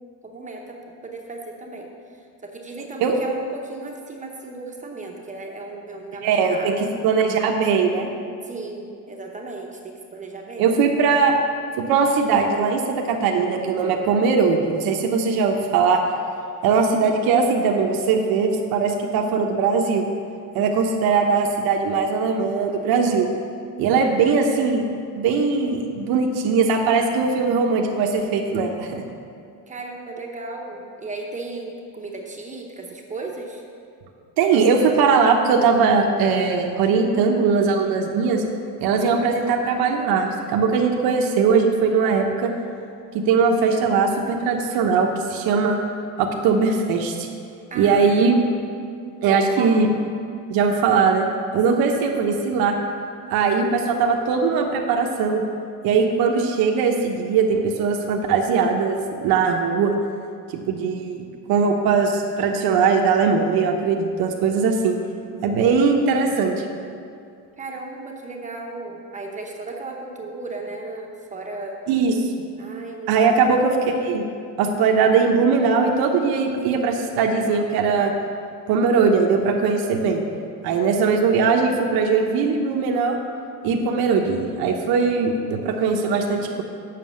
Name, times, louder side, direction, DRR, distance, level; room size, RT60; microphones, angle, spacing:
voice 1, 0.2-6.7 8.4-10.7 23.9-24.3 29.7-33.6 47.7-48.3 49.3-49.8 51.7-51.9 67.6-71.8 72.6-73.5, right 3 dB, 20° right, 0 dB, 0.9 m, -35 dB
voice 2, 6.2-6.7 7.0-8.1 10.6-11.3 11.8-16.0 16.6-20.0 20.5-23.3 23.8-24.8 25.2-29.0 34.4-38.4 38.8-42.5 43.1-45.8 46.2-47.3 47.7-48.4 49.2-49.9 50.5-51.3 51.5-52.7 53.3-55.4 55.8-60.0 60.7-65.0 65.4-66.7 71.9-72.3 73.1-73.8 74.0-74.2 74.6-78.1 78.7-80.2 80.6-83.2 83.6-86.6, right 5 dB, 80° right, 2 dB, 1.0 m, -20 dB
7.6 x 6.0 x 7.5 m, 2.4 s
cardioid pair, 155°, 36 cm